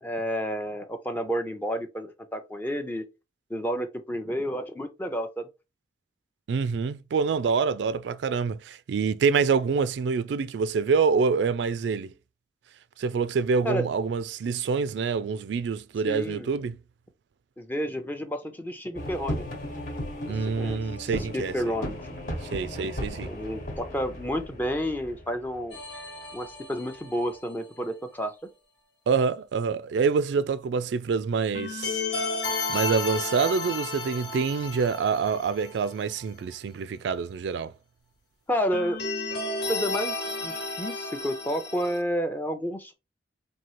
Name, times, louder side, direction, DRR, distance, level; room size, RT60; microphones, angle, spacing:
voice 1, 0.0-3.0 3.5-5.5 13.6-13.8 16.1-16.5 17.6-19.5 20.3-22.1 23.2-25.8 26.3-28.3 38.5-39.0 39.7-40.2 40.4-42.9, equal, 10° left, 0.5 m, -30 dB
voice 2, 6.5-12.1 13.0-16.8 20.3-21.6 22.5-23.3 29.1-32.0 32.7-37.7, right 5 dB, 80° right, 0.3 m, -26 dB
sound 1, 19.0-26.5, equal, 50° left, 1.3 m, -36 dB
sound 2, 25.7-27.5 31.5-35.9 36.2-36.3 38.7-42.0, left 3 dB, 80° left, 1.5 m, -33 dB
4.4 x 2.7 x 3.0 m
head